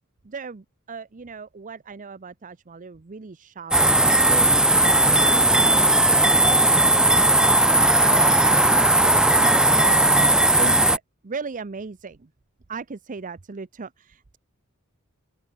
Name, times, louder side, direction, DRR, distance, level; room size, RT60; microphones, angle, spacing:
voice 1, 0.2-7.1 7.5-12.3 12.7-14.4, right 4 dB, 35° right, 0.6 m, -38 dB
sound 1, 3.7-11.0, right 1 dB, 5° right, 0.3 m, -17 dB
open air
head